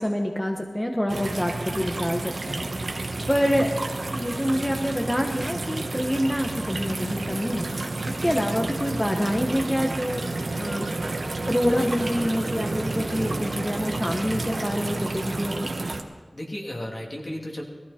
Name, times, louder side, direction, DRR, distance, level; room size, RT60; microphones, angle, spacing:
voice 1, 0.0-2.6 2.9-3.0 3.3-3.7 4.1-7.7 8.2-10.2 10.6-10.9 11.5-15.8, equal, 10° left, 2 dB, 1.3 m, -26 dB
sound 1, 1.1-16.0, right 2 dB, 75° right, 1.2 m, -30 dB
voice 2, 16.3-17.6, left 1 dB, 50° left, -1 dB, 2.9 m, -35 dB
19.0 x 15.0 x 4.4 m, 1.3 s
wide cardioid pair, 50°, 0 cm